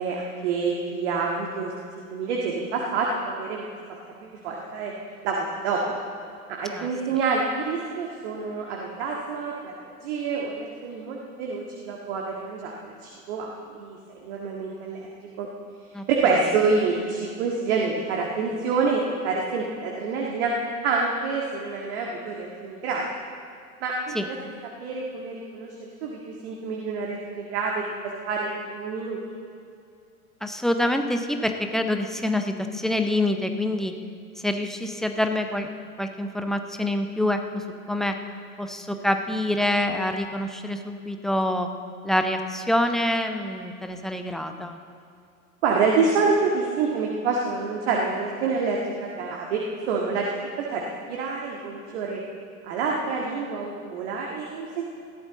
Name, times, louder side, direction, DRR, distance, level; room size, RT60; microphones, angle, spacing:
voice 1, 0.0-3.7 4.2-4.9 5.2-5.8 6.5-9.7 10.0-13.5 13.7-15.1 15.4-15.5 16.1-20.5 20.8-23.0 23.8-24.4 24.8-27.8 28.3-29.4 45.6-49.6 49.9-50.2 50.6-52.2 52.6-54.8, right 4 dB, 50° right, -1 dB, 1.8 m, -27 dB
voice 2, 30.4-33.9 34.4-35.7 36.0-37.6 37.9-38.2 38.6-41.7 42.0-44.8, left 1 dB, ahead, 6 dB, 0.4 m, -26 dB
20.0 x 14.0 x 4.0 m, 2.5 s
figure-of-eight pair, 90°, 44 cm